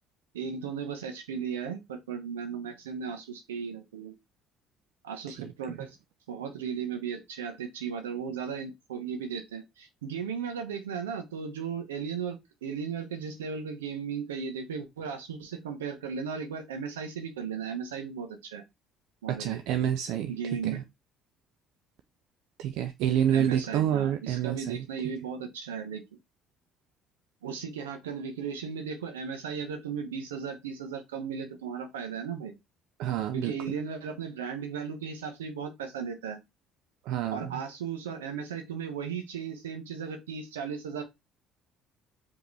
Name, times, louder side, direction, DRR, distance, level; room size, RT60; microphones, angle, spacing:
voice 1, 0.3-4.1 5.0-6.0 6.3-18.6 19.2-19.6 20.3-20.8 23.3-26.0 27.4-32.5 33.3-36.4 37.3-41.0, right 6 dB, 85° right, 0.9 m, -36 dB
voice 2, 19.3-20.8 22.6-24.9 33.0-33.8 37.1-37.6, right 10 dB, 65° right, 0.4 m, -29 dB
4.9 x 2.9 x 3.2 m
hypercardioid pair, 55°, 0 cm